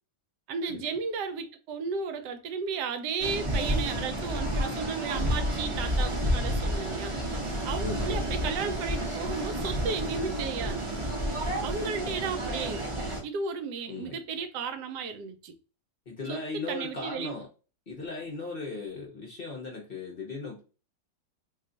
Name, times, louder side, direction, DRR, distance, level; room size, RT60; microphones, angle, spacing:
voice 1, 0.5-7.2 7.6-10.9 11.6-12.9 13.2-15.5 16.3-17.3, right 5 dB, 75° right, 1.1 m, -34 dB
sound 1, 3.2-13.2, equal, 50° right, 0.3 m, -30 dB
voice 2, 7.8-8.3 13.9-14.2 16.1-17.5 17.9-20.6, left 3 dB, 50° left, 0.7 m, -37 dB
2.8 x 2.3 x 3.8 m
omnidirectional pair, 1.8 m